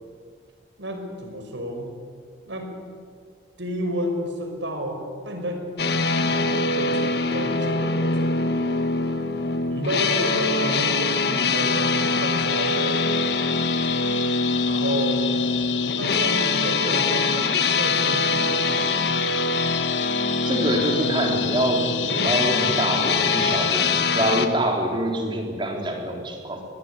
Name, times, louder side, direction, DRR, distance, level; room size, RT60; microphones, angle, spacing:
voice 1, 0.8-1.9 2.4-2.8 3.6-5.7 6.2-8.4 9.7-13.3 14.6-15.2 16.0-19.1, equal, 75° right, 4 dB, 5.5 m, -31 dB
sound 1, 5.8-24.5, left 3 dB, 55° left, 1.6 m, -24 dB
sound 2, 12.5-24.0, left 11 dB, 75° left, 0.9 m, -30 dB
voice 2, 20.4-26.7, right 1 dB, 25° right, 2 dB, 3.9 m, -25 dB
22.5 x 21.0 x 9.9 m, 2.1 s
head